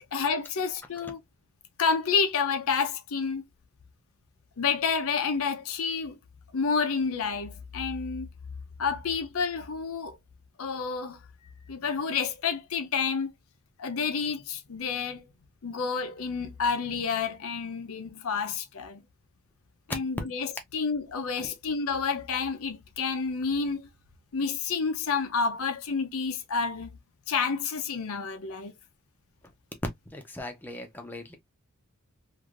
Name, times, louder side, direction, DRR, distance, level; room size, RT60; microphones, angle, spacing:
voice 1, 0.1-1.2 1.8-3.4 4.6-6.2 6.5-8.3 8.8-10.2 10.6-11.2 11.7-13.3 13.8-15.3 15.6-19.0 19.9-23.9 24.3-26.9 27.3-28.7, left 5 dB, 70° left, 0.6 m, -29 dB
voice 2, 30.1-31.4, left 1 dB, 10° left, 0.6 m, -41 dB
3.2 x 2.6 x 2.4 m
head